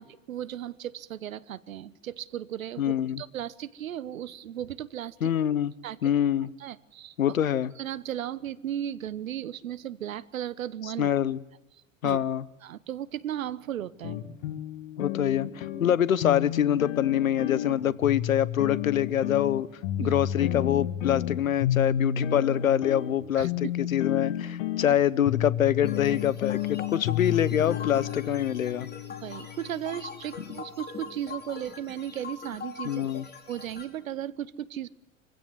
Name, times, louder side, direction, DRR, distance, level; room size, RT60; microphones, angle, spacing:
voice 1, 0.0-5.3 5.8-6.1 6.6-7.4 7.8-11.1 12.0-12.2 12.6-14.2 20.0-20.1 23.4-23.5 24.9-25.0 29.2-33.0 33.5-34.9, right 11 dB, 85° right, 19 dB, 1.1 m, -36 dB
voice 2, 2.8-3.2 5.2-5.7 6.0-6.5 7.2-7.7 11.0-11.4 12.0-12.4 15.0-19.7 20.0-28.9 30.5-30.6 32.8-33.2, left 10 dB, 90° left, 21 dB, 0.9 m, -25 dB
sound 1, 14.0-30.3, left 11 dB, 65° left, 2.1 m, -31 dB
sound 2, 25.9-33.8, left 5 dB, 25° left, 5.2 m, -42 dB
25.0 x 16.0 x 9.7 m, 0.98 s
hypercardioid pair, 85°, 39 cm